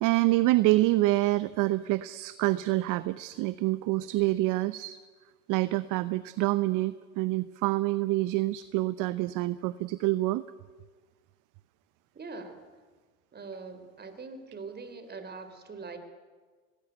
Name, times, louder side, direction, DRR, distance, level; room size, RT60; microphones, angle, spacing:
voice 1, 0.0-5.0 5.5-10.4, right 18 dB, 45° right, 15 dB, 0.8 m, -26 dB
voice 2, 12.1-12.6 13.3-16.0, right 4 dB, 20° right, 9 dB, 4.0 m, -42 dB
25.0 x 19.5 x 9.2 m, 1.5 s
hypercardioid pair, 90°, 44 cm